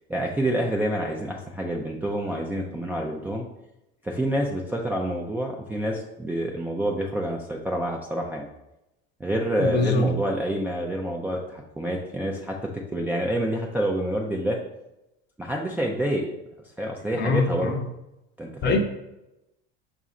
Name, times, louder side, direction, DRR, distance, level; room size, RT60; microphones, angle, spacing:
voice 1, 0.1-3.5 4.0-8.5 9.2-14.6 15.4-16.3 16.8-17.7 18.4-18.8, right 1 dB, 5° right, -2 dB, 0.3 m, -27 dB
voice 2, 9.6-10.1 17.1-17.8 18.6-18.8, left 3 dB, 35° left, 5 dB, 0.7 m, -23 dB
4.8 x 2.5 x 4.1 m, 0.91 s
supercardioid pair, 115°, 29 cm